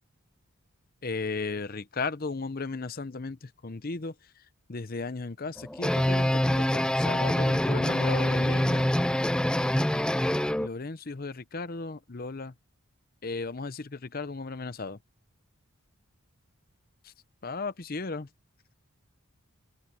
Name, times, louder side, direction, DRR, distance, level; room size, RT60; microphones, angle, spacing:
voice 1, 1.0-4.1 4.7-8.9 10.6-12.5 13.2-15.0 17.4-18.3, left 3 dB, 40° left, 0.7 m, -35 dB
sound 1, 5.6-10.7, left 1 dB, 5° left, 0.4 m, -25 dB
open air
head